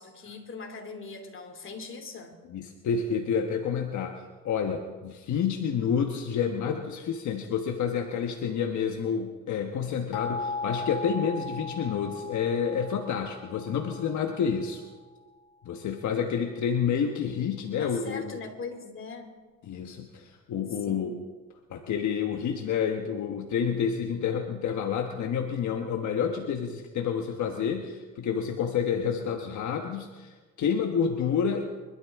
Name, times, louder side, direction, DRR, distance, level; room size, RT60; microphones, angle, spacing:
voice 1, 0.0-2.3 17.7-19.3 20.8-21.2 29.0-29.3, left 4 dB, 40° left, 4 dB, 2.7 m, -41 dB
voice 2, 2.5-14.8 15.6-18.4 19.6-21.2 21.7-31.6, left 7 dB, 70° left, 3 dB, 1.3 m, -29 dB
sound 1, 10.1-14.8, left 3 dB, 90° left, 2.1 m, -37 dB
24.5 x 12.5 x 3.6 m, 1.4 s
cardioid pair, 90°, 30 cm